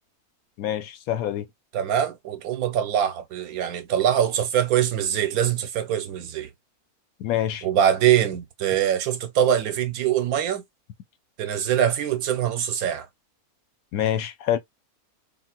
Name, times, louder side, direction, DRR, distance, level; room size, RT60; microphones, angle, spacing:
voice 1, 0.6-1.5 7.2-7.6 13.9-14.6, left 11 dB, 75° left, 1.1 m, -26 dB
voice 2, 1.7-6.5 7.6-10.6 11.4-13.1, right 10 dB, 80° right, 1.2 m, -23 dB
3.8 x 2.4 x 2.2 m
omnidirectional pair, 1.5 m